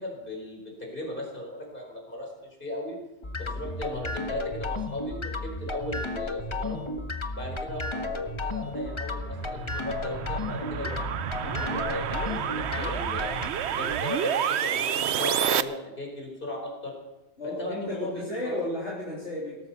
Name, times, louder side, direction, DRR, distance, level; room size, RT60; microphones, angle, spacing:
voice 1, 0.0-3.0 3.4-6.8 7.3-11.0 11.4-13.3 13.7-16.9 17.4-18.6, left 1 dB, 40° left, 0 dB, 4.8 m, -37 dB
sound 1, 3.2-13.5, left 2 dB, 25° left, 1.1 m, -33 dB
sound 2, 9.1-15.6, right 9 dB, 60° right, 0.9 m, -29 dB
voice 2, 17.4-19.6, left 1 dB, 55° left, -6 dB, 3.7 m, -33 dB
18.0 x 13.5 x 5.7 m, 1.1 s
omnidirectional pair, 1.4 m